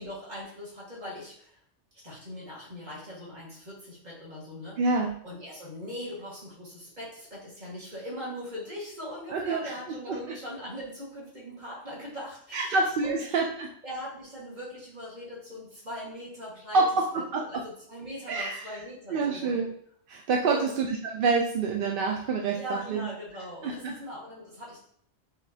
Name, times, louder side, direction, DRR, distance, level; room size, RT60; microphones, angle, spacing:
voice 1, 0.0-1.6 2.0-4.8 5.2-12.8 13.0-13.2 13.8-16.9 17.5-19.6 20.5-20.8 22.5-24.8, equal, 40° right, -6 dB, 1.8 m, -40 dB
voice 2, 4.8-5.1 9.3-9.7 12.5-13.7 16.7-17.1 17.3-17.5 18.3-18.7 19.1-19.7 20.1-23.1 23.6-24.0, right 4 dB, 60° right, 0 dB, 0.6 m, -27 dB
5.0 x 3.3 x 2.7 m, 0.64 s
omnidirectional pair, 1.2 m